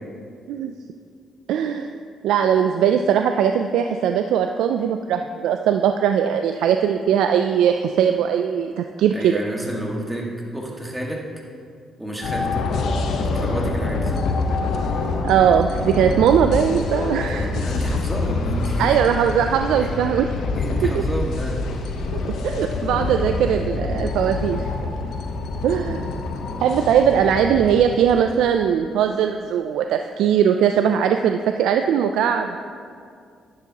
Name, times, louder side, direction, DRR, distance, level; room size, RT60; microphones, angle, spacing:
voice 1, 1.5-1.9 2.2-9.4 15.2-17.5 18.8-20.3 20.8-21.0 22.1-24.7 25.6-26.1 26.6-32.6, right 8 dB, 85° right, 6 dB, 0.3 m, -20 dB
voice 2, 9.1-11.3 12.0-12.7 13.2-14.3 17.2-18.9 19.7-20.0 20.5-21.6, right 1 dB, 10° right, -2 dB, 1.8 m, -30 dB
sound 1, 12.2-28.5, left 3 dB, 75° left, 0.9 m, -26 dB
11.0 x 10.5 x 2.9 m, 2.3 s
cardioid pair, 90°, 0 cm